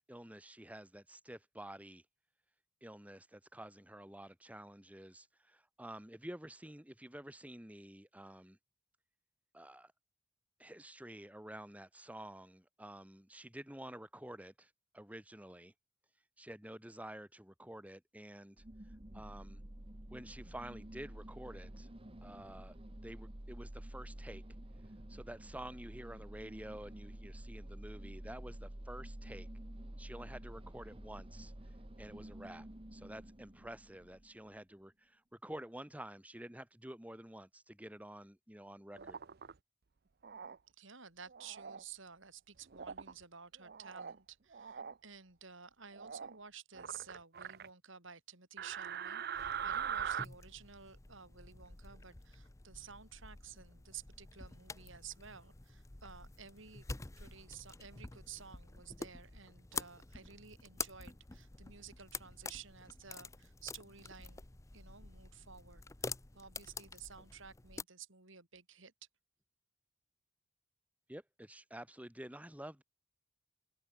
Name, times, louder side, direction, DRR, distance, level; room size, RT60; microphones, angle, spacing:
voice 1, 0.1-2.0 2.8-8.6 9.5-9.9 10.6-15.7 16.4-19.6 20.1-21.9 22.2-24.4 25.1-29.5 30.0-31.5 32.0-39.2 71.1-72.8, right 1 dB, 5° right, 1.5 m, -50 dB
sound 1, 18.6-34.5, right 1 dB, 25° right, 1.4 m, -50 dB
sound 2, 38.9-39.5 40.2-40.6 41.3-41.8 42.7-43.1 43.6-44.2 44.5-44.9 45.9-46.4 46.7-47.7 48.6-50.2, right 7 dB, 45° right, 0.6 m, -41 dB
voice 2, 40.8-56.9 57.2-64.4 64.7-68.9, right 7 dB, 65° right, 4.1 m, -53 dB
sound 3, 49.3-67.8, left 4 dB, 15° left, 0.6 m, -48 dB
head